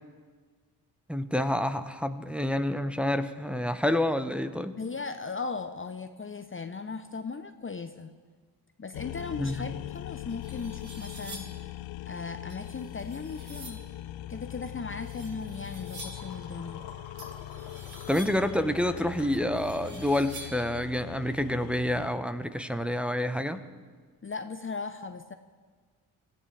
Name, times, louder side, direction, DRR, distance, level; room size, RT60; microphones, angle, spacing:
voice 1, 1.1-4.7 9.4-9.6 18.1-23.6, left 1 dB, ahead, 8 dB, 1.1 m, -28 dB
voice 2, 4.8-8.1 8.8-11.5 12.1-13.8 14.3-16.9 24.2-25.3, left 4 dB, 25° left, 8 dB, 0.8 m, -37 dB
sound 1, 8.9-22.1, left 15 dB, 65° left, 0.6 m, -41 dB
sound 2, 9.8-9.9 10.3-11.7 12.5-13.9 14.9-16.4 17.2-18.5 19.3-20.7, right 1 dB, 50° right, 4.2 m, -47 dB
sound 3, 15.5-20.6, left 5 dB, 90° left, 1.6 m, -50 dB
24.5 x 14.0 x 3.4 m, 1.5 s
hypercardioid pair, 40°, 49 cm